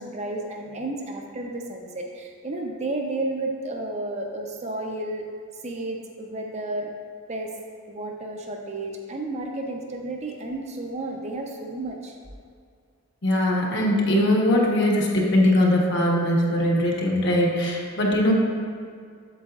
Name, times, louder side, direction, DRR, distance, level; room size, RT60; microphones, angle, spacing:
voice 1, 0.0-5.2 5.6-6.9 7.3-7.5 7.9-12.2, right 2 dB, 30° right, 1 dB, 0.5 m, -32 dB
voice 2, 13.2-18.3, left 1 dB, 55° left, -3 dB, 1.1 m, -21 dB
8.1 x 7.4 x 2.4 m, 2.2 s
head